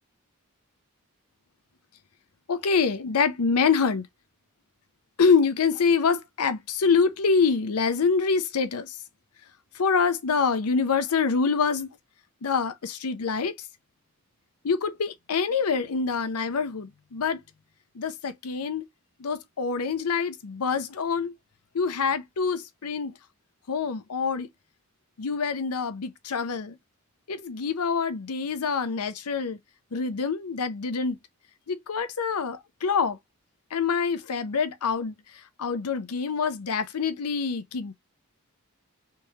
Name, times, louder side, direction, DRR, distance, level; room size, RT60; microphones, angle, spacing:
voice 1, 2.5-4.0 5.2-8.9 9.8-11.9 12.4-13.5 14.6-17.4 18.0-18.8 19.2-21.3 21.7-23.1 23.7-24.5 25.2-26.7 27.3-29.6 29.9-31.2 31.7-33.2 33.7-35.1 35.6-37.9, left 5 dB, 80° left, 0.6 m, -25 dB
3.5 x 3.1 x 2.8 m
head